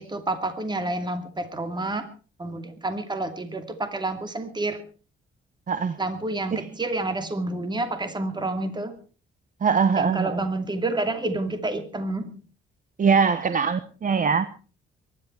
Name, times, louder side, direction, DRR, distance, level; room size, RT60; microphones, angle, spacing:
voice 1, 0.0-2.1 2.4-4.8 6.0-8.9 10.0-12.3, right 2 dB, 20° right, 8 dB, 2.6 m, -29 dB
voice 2, 5.7-6.0 6.5-6.7 9.6-10.5 13.0-14.5, right 5 dB, 40° right, 13 dB, 1.1 m, -22 dB
23.5 x 11.5 x 4.6 m, 0.37 s
cardioid pair, 90°, 20 cm